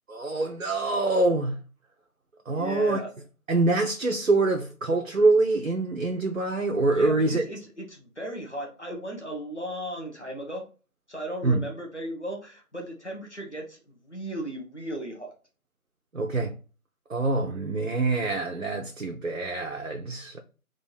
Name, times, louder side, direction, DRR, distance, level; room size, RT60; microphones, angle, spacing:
voice 1, 0.1-1.6 2.5-3.0 3.5-7.4 11.4-11.6 16.1-16.5 17.1-20.4, right 2 dB, 65° right, 0.6 m, -25 dB
voice 2, 2.5-3.1 6.9-10.7 11.1-15.3, right 1 dB, 50° left, 1.1 m, -36 dB
3.6 x 2.5 x 4.3 m
figure-of-eight pair, 175°, 44 cm